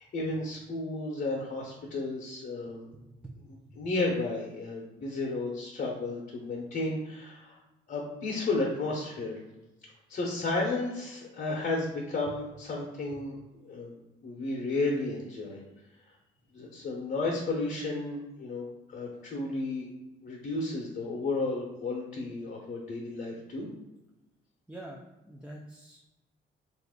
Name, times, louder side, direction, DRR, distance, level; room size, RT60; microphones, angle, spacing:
voice 1, 0.0-2.9 3.8-7.6 7.9-9.4 10.1-13.4 13.6-15.6 16.5-19.9 20.2-23.7, left 2 dB, 50° left, -3 dB, 0.8 m, -33 dB
voice 2, 3.0-3.3 3.6-3.9 24.7-26.0, right 1 dB, 5° right, -3 dB, 0.4 m, -46 dB
2.8 x 2.5 x 3.6 m, 0.99 s
cardioid pair, 90°, 20 cm